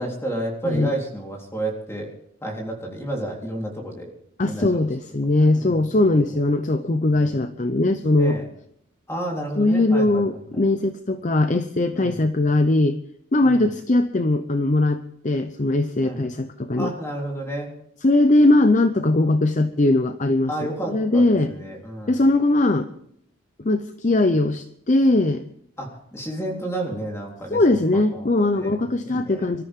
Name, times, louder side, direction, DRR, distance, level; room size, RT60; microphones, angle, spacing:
voice 1, 0.0-2.1 2.4-4.1 4.5-4.9 5.4-5.8 6.3-6.4 7.1-7.4 8.2-8.5 9.1-10.2 10.5-10.6 11.9-12.2 13.4-13.7 16.0-16.3 16.8-17.7 20.5-22.3 25.8-29.5, right 1 dB, 15° left, 0 dB, 3.7 m, -31 dB
voice 2, 0.6-0.9 4.4-8.4 9.6-13.0 13.3-16.9 18.0-20.5 20.9-21.5 22.1-22.9 23.6-25.4 27.5-29.6, left 2 dB, 35° left, 9 dB, 0.7 m, -20 dB
25.5 x 13.5 x 3.7 m, 0.71 s
head